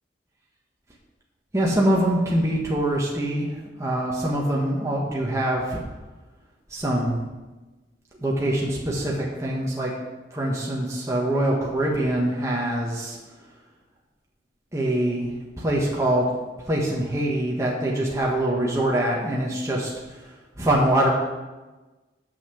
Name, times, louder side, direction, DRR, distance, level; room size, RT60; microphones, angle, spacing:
voice 1, 1.5-5.9 6.7-7.2 8.2-9.9 10.3-13.2 14.7-15.3 15.6-16.4 16.7-19.9 20.6-21.1, right 1 dB, 15° right, -4 dB, 1.6 m, -24 dB
9.8 x 5.8 x 7.8 m, 1.2 s
head